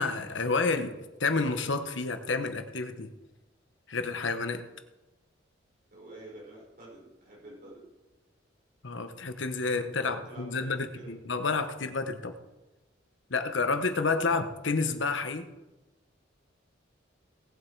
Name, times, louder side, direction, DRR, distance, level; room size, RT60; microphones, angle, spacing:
voice 1, 0.0-3.1 3.9-4.6 8.8-12.4 13.3-15.5, left 4 dB, 75° left, 8 dB, 1.1 m, -30 dB
voice 2, 5.9-7.8 9.8-11.2, right 1 dB, 50° right, -4 dB, 4.9 m, -48 dB
18.0 x 7.8 x 4.7 m, 1.0 s
head